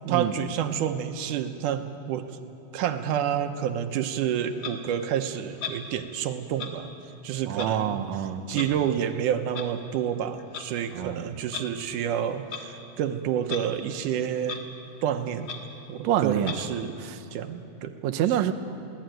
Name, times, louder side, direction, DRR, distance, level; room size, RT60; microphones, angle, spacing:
voice 1, 0.1-2.4 2.7-6.9 7.2-8.0 8.5-14.7 15.0-15.5 15.9-17.0 17.3-17.9, right 9 dB, 90° right, 7 dB, 2.5 m, -29 dB
Clock, 4.6-4.8 5.6-5.8 6.6-6.7 7.5-7.7 8.5-8.7 9.5-9.7 10.4-10.7 11.5-11.7 12.5-12.7 13.4-13.6 14.0-14.1 14.4-14.6 15.0-15.1 15.4-15.6 16.4-16.6, left 6 dB, 50° left, 2.1 m, -36 dB
voice 2, 7.5-8.7 10.9-11.3 16.0-16.6 17.0-17.2 18.0-18.5, right 10 dB, 70° right, 7 dB, 2.0 m, -27 dB
22.5 x 17.5 x 9.1 m, 2.7 s
omnidirectional pair, 3.5 m